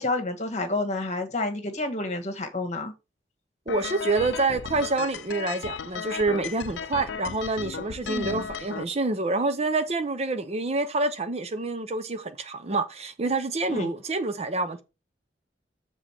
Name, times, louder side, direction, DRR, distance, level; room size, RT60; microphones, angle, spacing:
voice 1, 0.0-2.9 8.0-8.5 13.7-13.9, left 2 dB, 40° left, 1.4 m, -29 dB
sound 1, 3.7-8.8, left 6 dB, 85° left, 0.5 m, -35 dB
voice 2, 3.7-14.8, right 3 dB, 35° right, 0.7 m, -27 dB
7.1 x 3.8 x 5.8 m
head